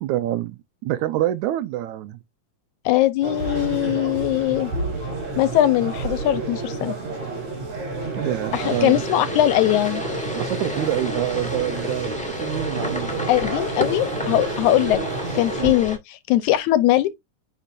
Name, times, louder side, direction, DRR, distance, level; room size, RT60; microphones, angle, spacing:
voice 1, 0.0-2.2 8.1-9.0 10.4-13.3 15.6-15.7, right 13 dB, 80° right, 1.9 m, -26 dB
voice 2, 2.9-4.7 5.4-6.9 8.5-10.0 13.3-15.0 15.3-17.1, left 14 dB, 80° left, 1.9 m, -20 dB
sound 1, 3.2-15.7, right 3 dB, 60° right, 4.9 m, -30 dB
sound 2, 8.5-16.0, left 2 dB, 5° left, 0.6 m, -32 dB
8.9 x 5.2 x 2.5 m
omnidirectional pair, 3.7 m